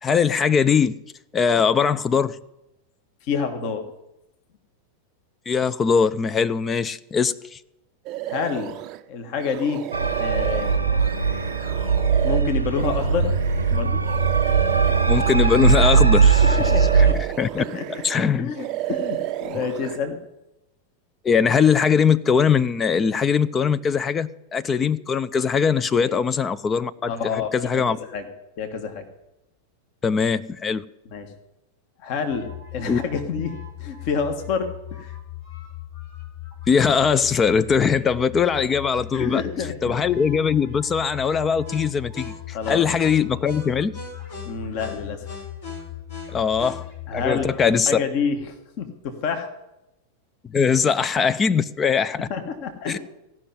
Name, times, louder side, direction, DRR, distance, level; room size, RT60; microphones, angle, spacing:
voice 1, 0.0-1.0 1.3-2.4 5.5-7.6 15.1-16.6 16.9-17.6 18.0-18.5 21.2-28.0 30.0-30.8 32.9-33.0 36.7-39.4 39.8-44.0 46.3-46.9 47.1-48.0 50.4-52.3 52.9-53.0, left 6 dB, 20° left, 0.5 m, -21 dB
voice 2, 3.3-3.9 8.3-8.8 9.1-9.8 10.2-11.4 12.0-13.3 13.7-14.0 16.4-17.2 17.7-17.9 18.4-20.2 25.9-26.2 27.1-27.8 28.1-28.2 28.6-29.0 31.1-31.3 32.0-33.5 33.8-35.1 37.8-37.9 39.1-40.0 42.5-42.8 44.4-45.3 47.1-49.5 52.3-53.0, left 6 dB, 45° left, 1.5 m, -28 dB
sound 1, 8.1-9.0 9.4-16.0 16.3-18.3 18.6-20.0, right 14 dB, 40° right, 0.5 m, -31 dB
sound 2, 9.9-17.1, right 5 dB, 85° right, 0.7 m, -19 dB
sound 3, 32.3-47.6, left 9 dB, 60° left, 4.8 m, -38 dB
15.5 x 6.0 x 9.7 m
figure-of-eight pair, 90°, 0 cm